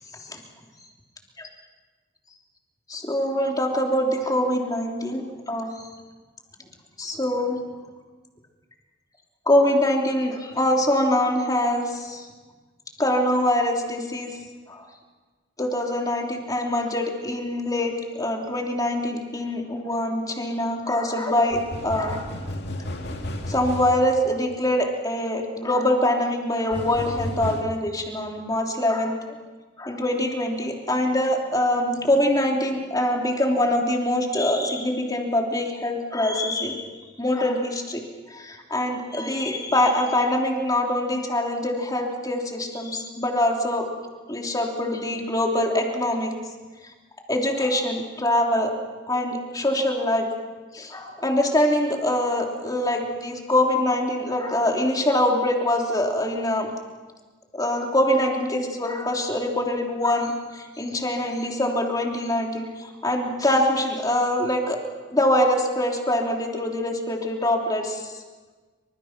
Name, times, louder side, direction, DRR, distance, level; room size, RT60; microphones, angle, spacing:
voice 1, 2.9-5.7 7.0-7.6 9.5-12.3 13.0-14.3 14.7-14.9 15.6-21.6 21.8-22.3 23.5-29.2 29.8-36.9 37.2-38.0 38.3-43.8 44.3-46.3 47.3-48.7 49.1-50.3 50.7-56.7 57.5-64.8 65.1-68.1, left 1 dB, 20° left, 1 dB, 3.2 m, -24 dB
sound 1, 21.5-24.0 26.7-27.6, left 1 dB, 60° left, 2.5 m, -32 dB
27.5 x 25.5 x 6.1 m, 1.4 s
head